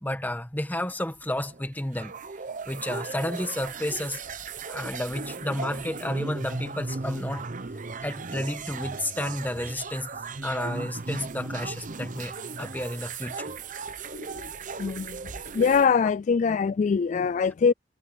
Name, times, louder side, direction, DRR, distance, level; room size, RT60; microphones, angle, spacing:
voice 1, 0.0-2.1 2.6-4.2 4.7-7.5 8.0-10.1 10.4-13.5, left 1 dB, 10° left, 1.6 m, -31 dB
sound 1, 0.9-15.9, right 4 dB, 45° right, 0.9 m, -36 dB
voice 2, 14.1-14.5 14.8-15.2 15.5-17.7, left 6 dB, 45° left, 0.3 m, -23 dB
head